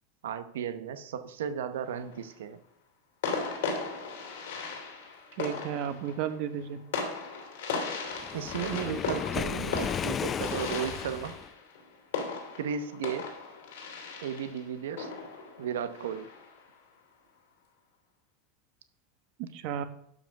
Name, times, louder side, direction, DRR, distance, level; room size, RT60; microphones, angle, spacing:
voice 1, 0.2-2.6 8.3-11.4 12.6-13.3 14.2-15.1 15.6-16.3, right 8 dB, 80° right, 11 dB, 0.8 m, -34 dB
sound 1, 1.7-2.3 3.2-16.6, left 4 dB, 75° left, 2.9 m, -37 dB
voice 2, 5.4-6.8 19.5-19.8, right 9 dB, 60° right, 10 dB, 1.2 m, -33 dB
Waves surf, 8.2-11.5, left 8 dB, 30° left, 0.5 m, -34 dB
12.0 x 5.3 x 5.9 m, 0.72 s
hypercardioid pair, 90°, 0 cm